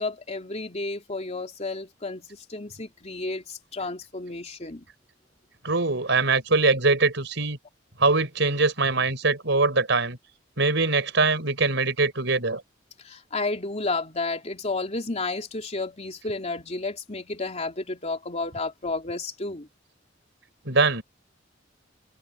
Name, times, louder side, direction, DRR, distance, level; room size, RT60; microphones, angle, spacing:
voice 1, 0.0-4.9 13.0-19.7, left 3 dB, 35° left, 3.2 m, -32 dB
voice 2, 5.6-7.6 8.0-10.2 10.6-12.6 20.7-21.0, right 3 dB, 70° right, 6.2 m, -22 dB
open air
head